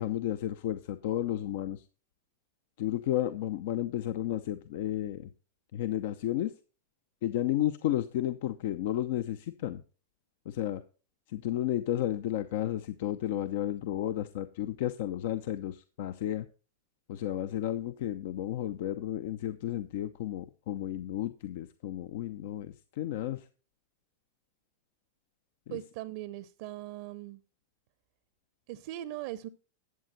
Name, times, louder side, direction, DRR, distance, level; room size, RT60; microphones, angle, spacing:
voice 1, 0.0-1.8 2.8-5.3 5.7-6.5 7.2-9.8 10.5-10.8 11.3-16.5 17.1-23.4, left 12 dB, 60° left, 0.7 m, -32 dB
voice 2, 25.7-27.4 28.7-29.5, right 15 dB, 55° right, 0.7 m, -40 dB
12.5 x 8.2 x 4.2 m
hypercardioid pair, 100°, 0 cm